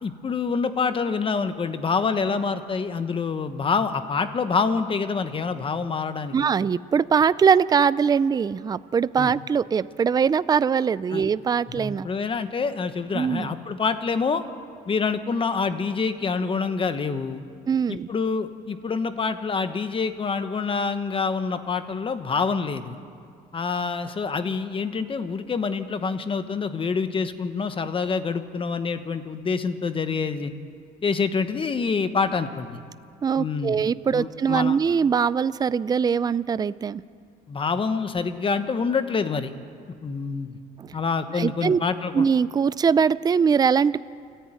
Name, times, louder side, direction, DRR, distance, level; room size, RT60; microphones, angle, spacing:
voice 1, 0.0-6.5 9.2-9.3 11.1-11.2 11.8-14.4 14.9-17.4 17.9-23.0 23.5-30.5 31.0-32.8 33.4-33.8 34.1-34.8 37.5-39.5 40.0-40.6 40.9-42.3, left 5 dB, 30° left, 10 dB, 1.3 m, -26 dB
voice 2, 6.3-12.1 13.1-13.5 17.7-18.1 33.2-37.0 40.8-41.0 41.3-41.8 42.1-44.0, right 6 dB, 25° right, 17 dB, 0.4 m, -22 dB
29.0 x 10.5 x 9.1 m, 2.4 s
cardioid pair, 110°, 17 cm